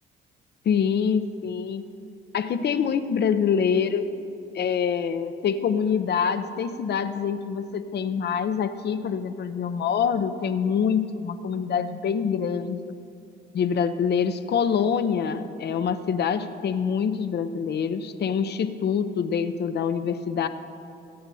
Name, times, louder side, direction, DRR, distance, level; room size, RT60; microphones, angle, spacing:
voice 1, 0.6-1.8 2.3-4.1 4.5-12.9 13.5-20.5, left 7 dB, 55° left, 10 dB, 0.7 m, -25 dB
22.5 x 8.7 x 2.8 m, 2.8 s
cardioid pair, 90°, 20 cm